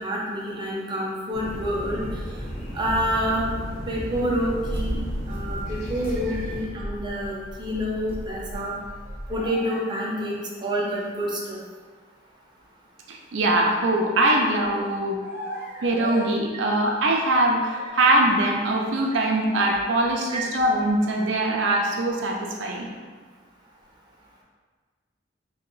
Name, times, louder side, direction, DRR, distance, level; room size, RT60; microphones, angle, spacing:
voice 1, 0.0-2.2 2.7-3.5 3.9-5.0 5.3-8.7 9.3-11.6 14.3-14.4 19.1-19.2 20.3-20.4, equal, 25° right, -4 dB, 0.7 m, -28 dB
sound 1, 1.3-6.6, equal, 40° left, 1.3 m, -34 dB
sound 2, 4.6-9.5, equal, 15° left, 0.6 m, -35 dB
sound 3, 9.0-10.3 11.4-11.5 13.6-13.9 15.2-16.3 16.6-17.3 17.6-17.9, equal, 55° left, 1.4 m, -38 dB
voice 2, 13.1-15.2 15.8-22.9, right 1 dB, 80° right, 0 dB, 0.5 m, -22 dB
2.8 x 2.8 x 3.9 m, 1.5 s
head